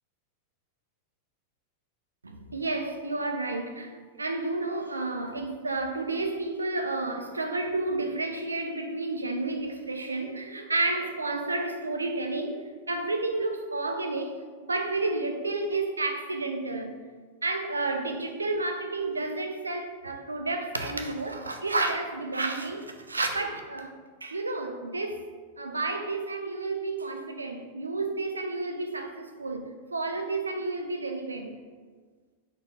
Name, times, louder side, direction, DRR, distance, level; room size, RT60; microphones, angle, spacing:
voice 1, 2.2-3.9 4.2-12.6 12.9-14.3 14.7-16.9 17.4-23.9 24.2-25.2 25.6-31.6, right 2 dB, 80° right, 0.4 m, -31 dB
4.0 x 2.4 x 4.2 m
figure-of-eight pair, 90°, 0 cm